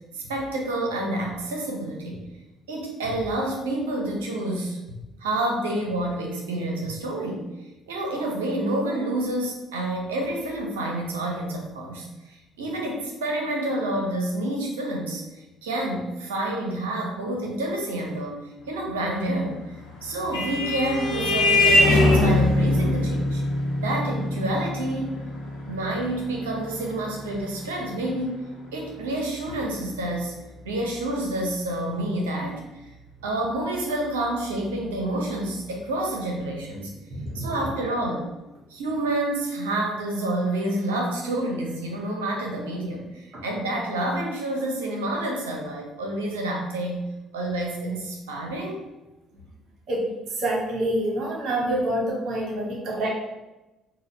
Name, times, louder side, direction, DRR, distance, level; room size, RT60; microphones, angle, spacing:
voice 1, 0.2-2.2 2.7-7.5 7.9-15.2 15.6-19.8 20.0-23.4 23.8-25.1 25.7-30.3 30.6-32.8 33.2-36.9 37.3-38.3 38.7-47.1 47.3-48.8, right 1 dB, 70° right, 0 dB, 0.7 m, -28 dB
Vehicle horn car horn honking, 19.7-28.7, left 1 dB, 75° left, 0.7 m, -23 dB
voice 2, 37.1-37.7 43.3-43.4 49.9-50.1 50.4-53.1, right 1 dB, 50° right, -3 dB, 1.1 m, -27 dB
4.0 x 2.2 x 4.1 m, 1.0 s
figure-of-eight pair, 50°, 0 cm